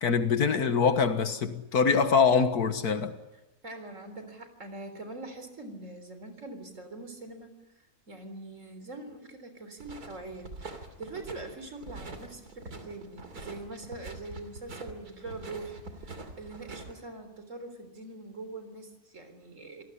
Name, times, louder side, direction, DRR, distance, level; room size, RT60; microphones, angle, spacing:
voice 1, 0.0-3.2, left 5 dB, 80° left, 2.0 m, -24 dB
voice 2, 3.6-7.6 8.1-19.8, right 2 dB, 55° right, 4.2 m, -43 dB
sound 1, 9.8-16.9, right 3 dB, 80° right, 3.4 m, -44 dB
28.0 x 18.5 x 9.9 m
omnidirectional pair, 1.6 m